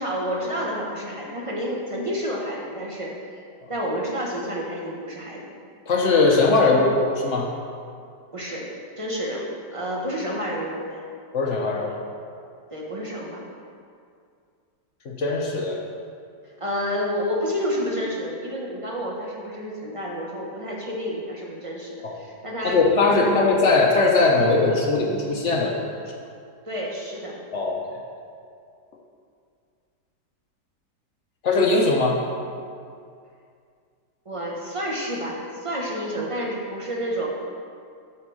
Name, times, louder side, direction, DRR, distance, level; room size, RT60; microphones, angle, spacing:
voice 1, 0.0-3.4 3.7-5.5 8.3-8.7 9.0-11.0 12.7-13.4 16.6-22.8 23.1-23.5 26.7-27.4 34.2-37.3, equal, 25° right, -3 dB, 0.8 m, -29 dB
voice 2, 5.9-7.5 11.3-12.0 15.1-15.8 22.0-22.1 22.6-25.8 27.5-27.8 31.4-32.2, left 3 dB, 55° left, 0 dB, 0.9 m, -20 dB
8.6 x 4.5 x 6.2 m, 2.3 s
omnidirectional pair, 1.9 m